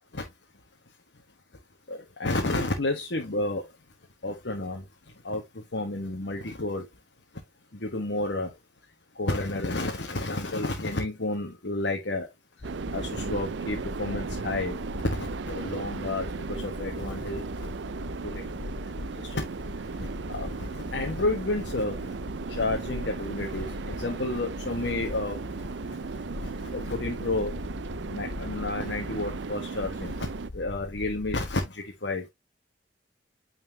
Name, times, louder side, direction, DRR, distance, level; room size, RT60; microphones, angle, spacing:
voice 1, 1.9-3.6 4.2-4.8 5.2-6.9 7.8-8.5 9.2-12.3 12.9-14.8 15.2-17.4 18.2-18.5 19.2-19.4 20.3-22.0 22.5-25.4 26.4-27.5 28.1-30.1 30.5-32.2, left 2 dB, 85° left, 1.4 m, -31 dB
sound 1, 12.6-31.6, left 2 dB, 50° left, 0.7 m, -40 dB
sound 2, 12.6-30.5, right 5 dB, 85° right, 0.5 m, -37 dB
9.2 x 4.4 x 2.8 m
head